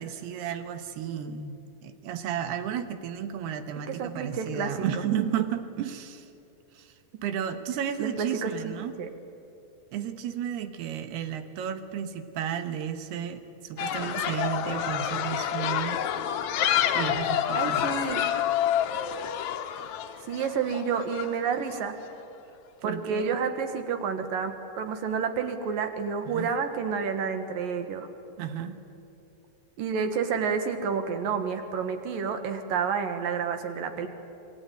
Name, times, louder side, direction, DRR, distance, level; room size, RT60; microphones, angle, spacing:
voice 1, 0.0-6.3 6.8-6.9 7.2-9.0 9.9-16.0 16.9-17.8 22.8-23.4 26.3-26.5 28.4-28.8, right 9 dB, 85° right, 9 dB, 3.3 m, -33 dB
voice 2, 3.9-4.8 8.0-8.7 9.0-9.1 17.5-18.2 20.3-22.0 22.8-28.1 29.8-34.1, right 6 dB, 65° right, 7 dB, 3.1 m, -29 dB
sound 1, 13.8-21.8, left 10 dB, 70° left, 1.8 m, -28 dB
27.0 x 21.5 x 9.2 m, 2.8 s
omnidirectional pair, 4.5 m